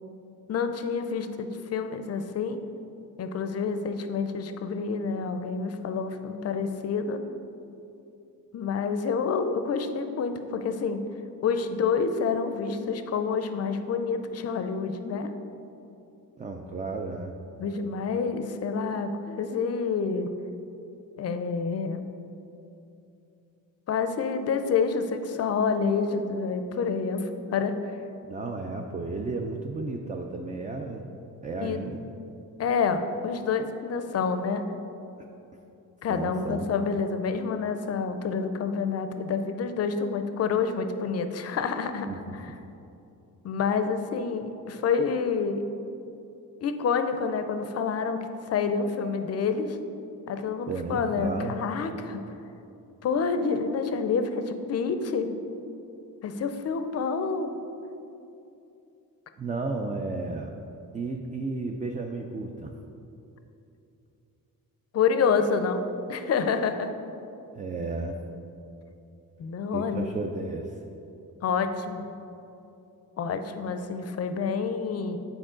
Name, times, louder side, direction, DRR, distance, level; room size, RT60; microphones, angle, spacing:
voice 1, 0.5-2.6 3.2-7.2 8.5-11.0 11.4-15.3 17.6-20.3 21.2-22.0 23.9-28.0 31.6-31.8 32.6-34.7 36.0-42.5 43.4-45.6 46.6-49.8 50.3-52.2 53.0-55.3 56.2-57.5 64.9-66.9 69.4-70.2 71.4-72.1 73.2-75.2, left 5 dB, 45° left, 8 dB, 0.5 m, -28 dB
voice 2, 16.4-17.3 28.3-31.0 31.4-32.0 35.2-35.3 36.1-36.7 42.1-42.4 50.7-51.5 59.4-60.5 60.9-62.7 67.6-68.2 69.7-70.7, right 3 dB, 25° right, 3 dB, 0.4 m, -33 dB
8.8 x 4.6 x 3.7 m, 2.8 s
cardioid pair, 120°, 35 cm